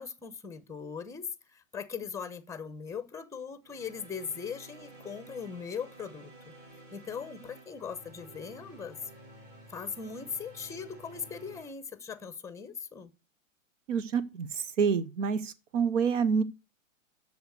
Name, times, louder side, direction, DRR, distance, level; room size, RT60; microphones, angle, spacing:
voice 1, 0.0-6.3 6.9-9.0 9.7-13.1, left 6 dB, 5° left, 0.9 m, -39 dB
sound 1, 3.6-11.7, right 1 dB, 25° right, 4.3 m, -52 dB
voice 2, 13.9-16.4, right 6 dB, 65° right, 1.0 m, -28 dB
8.0 x 6.8 x 6.5 m
hypercardioid pair, 115°, 40 cm